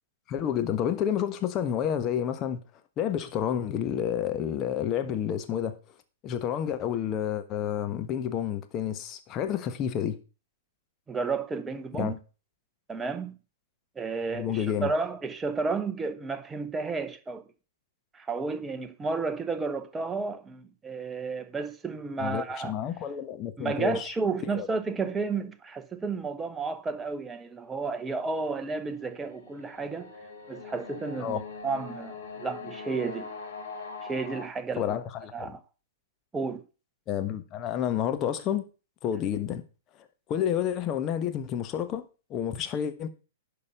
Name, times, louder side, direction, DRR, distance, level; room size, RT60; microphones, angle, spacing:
voice 1, 0.3-2.6 3.0-5.8 6.2-10.2 11.9-12.1 14.3-14.9 22.2-24.1 24.5-24.7 31.2-31.4 34.8-35.6 37.1-38.6 39.0-39.6 40.3-42.0 42.3-43.1, left 9 dB, 30° left, 1.3 m, -29 dB
voice 2, 11.1-12.2 12.9-13.3 14.0-17.4 18.1-22.7 23.6-30.1 30.5-33.3 34.0-34.9 35.3-35.6 36.3-36.6, right 4 dB, 15° right, 1.0 m, -32 dB
sound 1, 27.8-34.5, left 4 dB, 65° left, 3.4 m, -43 dB
11.0 x 5.4 x 5.4 m
hypercardioid pair, 110°, 0 cm